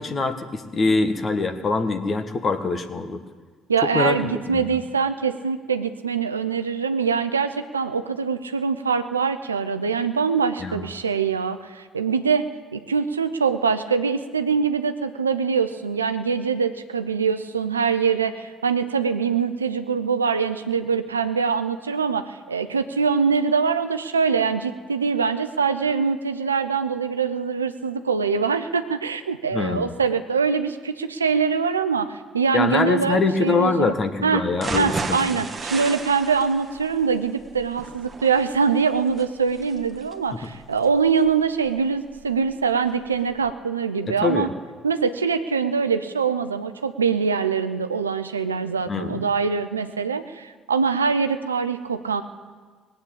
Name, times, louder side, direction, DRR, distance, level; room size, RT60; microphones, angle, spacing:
voice 1, 0.0-3.2 3.9-4.6 10.6-10.8 29.5-29.9 32.5-35.4 44.2-44.5 48.9-49.2, left 3 dB, 40° left, 10 dB, 1.5 m, -24 dB
voice 2, 3.7-12.4 12.7-33.9 34.2-34.4 34.7-44.5 44.8-52.2, right 5 dB, 90° right, 10 dB, 0.6 m, -23 dB
sound 1, 34.5-42.5 42.9-43.0 43.4-43.5, right 4 dB, 30° right, 1.5 m, -35 dB
19.5 x 8.5 x 8.7 m, 1.5 s
figure-of-eight pair, 50°, 0 cm